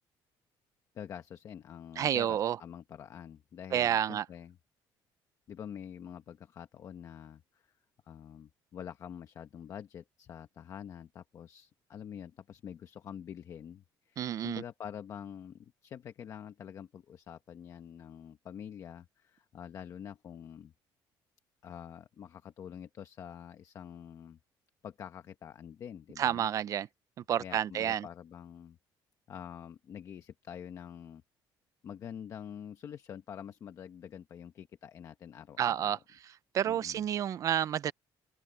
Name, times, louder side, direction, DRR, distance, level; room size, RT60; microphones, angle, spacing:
voice 1, 0.9-4.6 5.5-7.7 8.1-20.7 21.6-24.4 24.8-26.5 27.4-28.8 29.3-31.2 31.8-36.0 36.6-37.1, left 8 dB, 40° left, 1.1 m, -46 dB
voice 2, 2.0-2.6 3.7-4.3 14.2-14.6 26.2-26.9 27.3-28.1 35.6-36.0 36.5-37.9, right 10 dB, 40° right, 0.6 m, -29 dB
cardioid pair, 175°, 9 cm